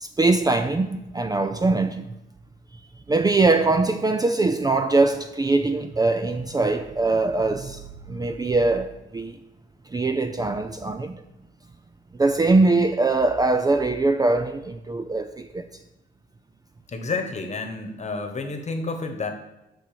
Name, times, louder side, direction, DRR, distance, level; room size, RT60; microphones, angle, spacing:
voice 1, 0.0-2.1 3.1-7.8 8.1-9.4 9.9-11.2 12.2-15.6, right 3 dB, 20° right, 0.5 m, -22 dB
voice 2, 16.9-19.3, left 3 dB, 35° left, 1.3 m, -30 dB
6.1 x 5.5 x 6.8 m
cardioid pair, 90°, 20 cm